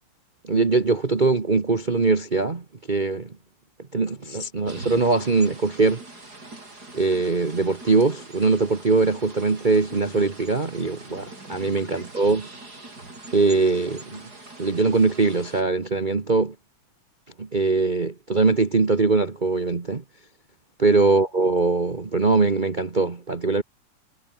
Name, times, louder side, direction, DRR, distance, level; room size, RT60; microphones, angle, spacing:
voice 1, 0.4-3.3 3.9-6.0 6.9-12.5 13.3-14.2 14.6-16.5 17.4-20.0 20.8-23.6, right 3 dB, 65° right, 0.4 m, -22 dB
sound 1, 4.6-15.6, right 2 dB, 30° right, 6.5 m, -42 dB
omnidirectional pair, 3.3 m